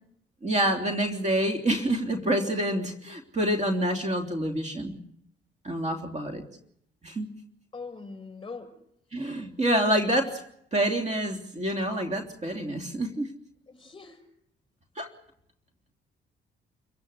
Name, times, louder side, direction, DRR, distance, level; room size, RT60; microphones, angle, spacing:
voice 1, 0.4-5.0 5.6-6.4 7.0-7.3 9.1-10.4 10.7-13.3 15.0-15.1, right 1 dB, 35° right, 4 dB, 3.4 m, -27 dB
voice 2, 7.7-8.8 13.7-14.2, left 4 dB, 25° left, 5 dB, 7.6 m, -42 dB
29.0 x 16.5 x 8.3 m, 0.72 s
cardioid pair, 90°, 20 cm